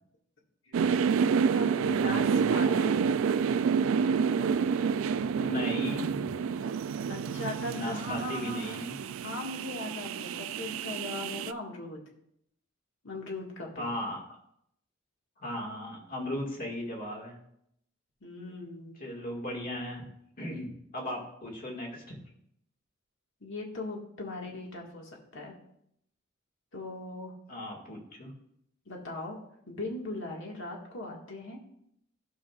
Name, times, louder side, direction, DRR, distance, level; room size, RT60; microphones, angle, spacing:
sound 1, 0.7-11.5, right 6 dB, 70° right, 0.3 m, -28 dB
voice 1, 1.5-2.9 7.1-8.8 9.2-12.0 13.0-14.0 18.2-19.0 23.4-25.6 26.7-27.3 28.8-29.4 29.7-31.6, left 2 dB, 65° left, -1 dB, 1.7 m, -39 dB
voice 2, 2.4-3.0 5.4-6.3 7.7-9.0 13.8-14.2 15.4-17.4 19.0-20.0 20.4-22.2 27.5-28.3, equal, 45° left, 0 dB, 1.9 m, -36 dB
14.0 x 5.9 x 2.4 m, 0.74 s
head